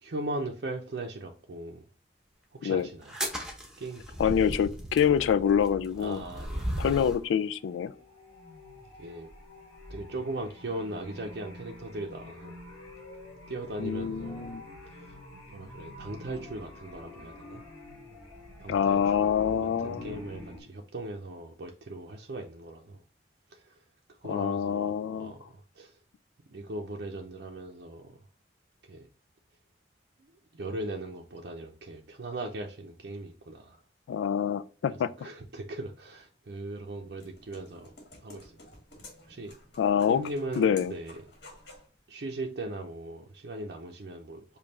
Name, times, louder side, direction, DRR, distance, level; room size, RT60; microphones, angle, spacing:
voice 1, 0.0-1.9 2.5-3.1 3.8-4.2 6.0-7.1 9.0-9.3 9.9-12.6 13.5-14.6 14.9-15.0 15.5-17.6 18.6-19.6 19.8-23.0 23.5-23.8 24.2-26.0 26.5-28.2 28.8-29.1 30.2-33.8 34.9-37.9 38.2-38.5 39.3-39.6 40.1-41.2 42.1-44.4, right 2 dB, 60° right, 0.5 m, -39 dB
sound 1, 3.0-7.2, right 1 dB, 5° right, 0.8 m, -36 dB
voice 2, 4.2-6.2 6.8-7.9 13.8-14.6 18.7-20.2 24.3-25.3 34.1-35.1 39.8-40.2 40.6-40.9, left 8 dB, 85° left, 0.3 m, -26 dB
sound 2, 7.3-20.6, left 1 dB, 15° left, 2.2 m, -47 dB
sound 3, 36.9-41.9, left 2 dB, 60° left, 1.8 m, -52 dB
5.2 x 2.3 x 4.2 m
head